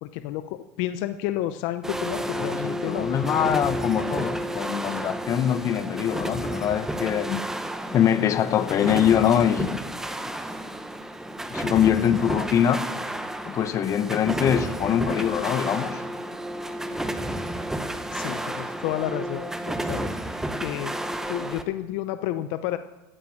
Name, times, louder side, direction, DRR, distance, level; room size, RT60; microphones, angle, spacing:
voice 1, 0.0-3.1 18.1-20.9 21.3-22.8, left 13 dB, 60° left, 11 dB, 0.7 m, -31 dB
sound 1, 1.8-21.6, right 1 dB, 5° right, 1.0 m, -31 dB
voice 2, 2.6-7.4 7.9-9.8 11.5-12.9 13.4-16.0, left 9 dB, 35° left, 12 dB, 1.0 m, -23 dB
15.5 x 9.9 x 7.3 m, 1.1 s
supercardioid pair, 125°, 9 cm